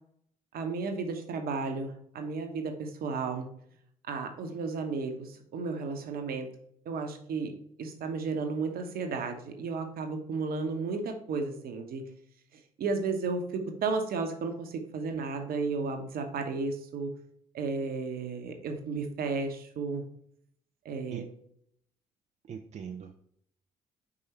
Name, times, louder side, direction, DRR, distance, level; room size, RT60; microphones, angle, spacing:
voice 1, 0.5-3.5 4.1-6.5 6.8-7.5 7.8-12.0 12.8-17.1 17.5-20.0 20.8-21.2, right 4 dB, 50° right, 5 dB, 1.0 m, -33 dB
voice 2, 22.4-23.2, right 7 dB, 35° right, 5 dB, 0.5 m, -41 dB
4.9 x 4.6 x 4.3 m, 0.68 s
figure-of-eight pair, 45°, 19 cm